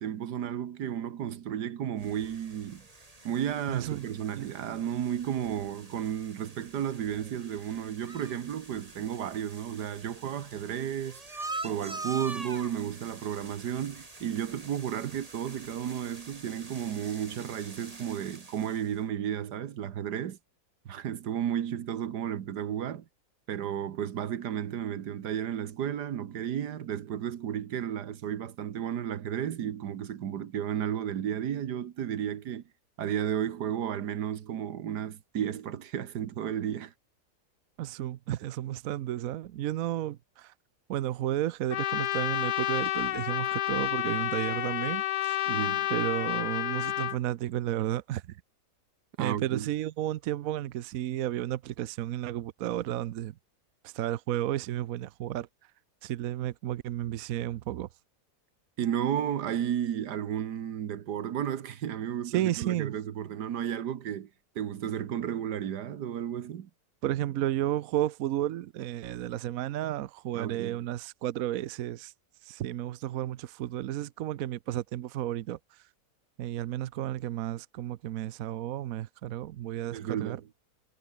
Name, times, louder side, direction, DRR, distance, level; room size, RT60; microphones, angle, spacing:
voice 1, 0.0-2.8 3.3-20.4 20.9-23.1 23.5-32.6 33.0-36.9 45.5-45.9 49.2-49.7 58.8-64.3 64.6-66.7 70.3-70.8 79.9-80.4, right 9 dB, 85° right, 1.7 m, -33 dB
sound 1, 2.0-19.0, right 2 dB, 20° right, 2.4 m, -45 dB
voice 2, 3.7-4.1 4.4-4.5 37.8-40.5 40.9-45.4 45.9-48.4 49.2-53.3 53.8-55.5 56.0-57.9 62.3-62.9 67.0-72.1 72.4-75.8 76.4-80.4, right 13 dB, 65° right, 1.0 m, -32 dB
Trumpet, 41.7-47.2, left 14 dB, 85° left, 1.2 m, -30 dB
omnidirectional pair, 1.7 m